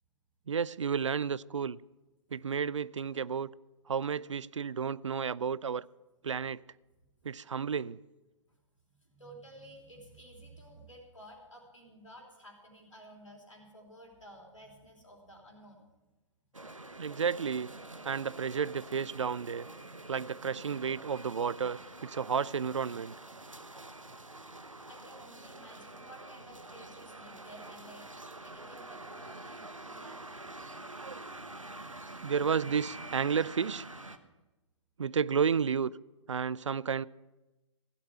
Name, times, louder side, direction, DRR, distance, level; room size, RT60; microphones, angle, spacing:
voice 1, 0.5-1.8 2.3-3.5 3.9-5.9 6.2-6.6 7.2-8.0 17.0-17.7 18.0-19.7 20.1-23.1 30.9-31.3 32.2-33.8 35.0-35.9 36.3-37.1, right 6 dB, 70° right, 0.4 m, -32 dB
voice 2, 9.0-15.9 24.9-30.2, right 1 dB, 80° left, 3.3 m, -53 dB
sound 1, 16.5-34.2, right 2 dB, 85° right, 0.9 m, -47 dB
16.0 x 8.5 x 6.0 m
figure-of-eight pair, 120°, 16 cm